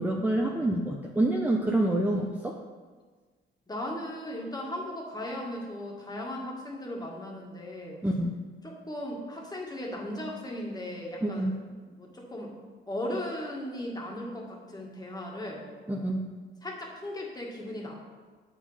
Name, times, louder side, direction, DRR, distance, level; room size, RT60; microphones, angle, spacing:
voice 1, 0.0-2.6 8.0-8.4 11.2-11.6 15.9-16.3, right 1 dB, 10° right, 0 dB, 0.7 m, -27 dB
voice 2, 3.7-8.0 8.6-11.5 12.0-12.5 12.9-15.6 16.6-18.0, left 1 dB, 20° left, -1 dB, 1.8 m, -37 dB
7.9 x 5.0 x 5.5 m, 1.4 s
cardioid pair, 90°, 20 cm